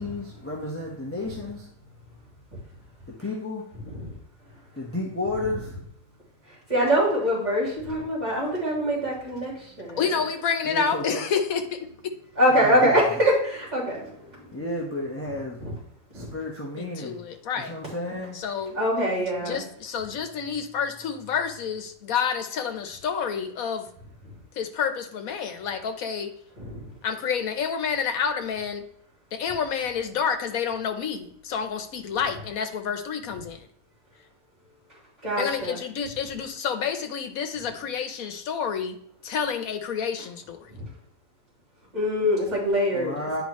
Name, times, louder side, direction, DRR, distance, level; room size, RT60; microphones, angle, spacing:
voice 1, 0.0-1.7 3.2-3.6 4.8-5.7 10.7-11.2 12.8-12.9 14.5-15.6 16.1-17.2 17.7-18.4 42.9-43.4, left 2 dB, 10° left, -3 dB, 1.1 m, -32 dB
voice 2, 6.5-10.0 12.4-14.5 15.2-15.3 15.6-15.7 16.1-16.3 18.7-19.6 26.6-26.8 35.2-35.8 40.7-40.9 41.9-43.4, equal, 30° right, -7 dB, 3.5 m, -24 dB
voice 3, 10.0-11.8 16.8-17.8 18.3-18.8 19.4-23.9 24.5-26.3 27.0-28.9 29.3-33.7 35.4-39.0 39.2-40.7, left 6 dB, 80° left, 7 dB, 1.3 m, -29 dB
10.0 x 4.6 x 3.1 m, 0.70 s
omnidirectional pair, 1.5 m